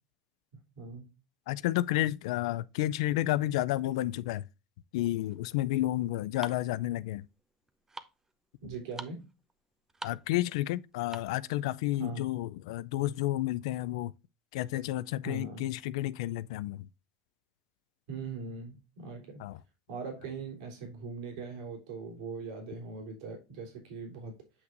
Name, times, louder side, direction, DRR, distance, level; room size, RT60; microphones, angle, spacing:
voice 1, 0.8-1.1 8.6-9.2 12.0-12.3 15.2-15.6 18.1-19.4 19.9-24.4, right 4 dB, 85° right, 3.3 m, -41 dB
voice 2, 1.5-4.4 4.9-7.2 10.0-14.1 14.5-16.9 19.4-19.6, left 15 dB, 85° left, 0.4 m, -31 dB
sound 1, 5.2-11.5, right 3 dB, 15° right, 0.8 m, -48 dB
7.9 x 5.9 x 2.5 m
supercardioid pair, 115°, 3 cm